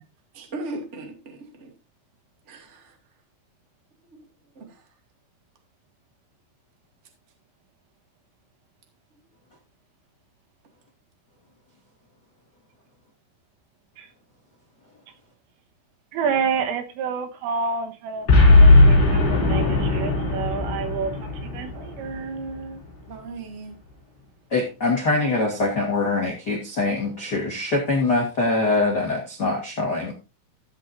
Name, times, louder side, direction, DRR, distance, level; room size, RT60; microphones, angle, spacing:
voice 1, 0.3-1.7 2.5-2.9 4.5-4.6 23.1-23.7, right 2 dB, 35° right, 1.0 m, -37 dB
voice 2, 16.1-21.1 21.4-22.8, right 6 dB, 80° right, 3.8 m, -29 dB
Boom, 18.3-22.7, left 2 dB, 30° left, 4.8 m, -17 dB
voice 3, 24.5-30.1, left 3 dB, 85° left, 0.9 m, -23 dB
15.0 x 7.7 x 2.7 m
omnidirectional pair, 5.9 m